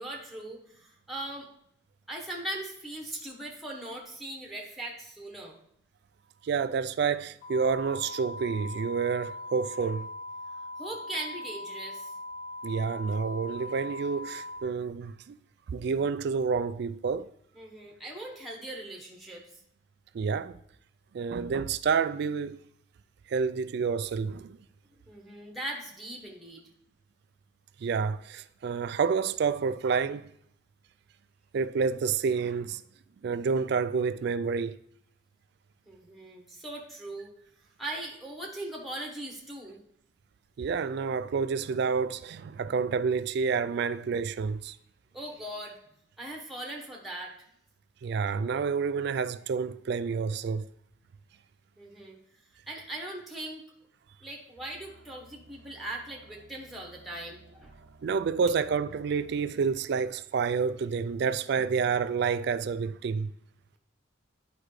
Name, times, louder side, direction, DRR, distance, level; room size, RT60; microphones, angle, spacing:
voice 1, 0.0-1.5 2.1-5.6 10.8-12.1 17.5-19.6 25.1-26.6 35.9-37.3 37.8-39.8 45.1-45.8 46.2-47.3 51.8-52.2 52.7-53.6 54.2-57.7, right 1 dB, ahead, 1.1 m, -40 dB
voice 2, 6.4-10.1 12.6-15.4 15.7-17.3 20.1-20.6 21.1-22.6 23.3-24.6 27.8-30.3 31.5-32.8 33.2-34.8 40.6-44.8 48.0-50.7 58.0-63.3, right 5 dB, 55° right, 0.3 m, -29 dB
sound 1, 7.4-14.6, left 2 dB, 45° left, 2.1 m, -40 dB
sound 2, 54.6-59.6, right 3 dB, 75° right, 0.7 m, -56 dB
9.9 x 4.9 x 3.2 m
head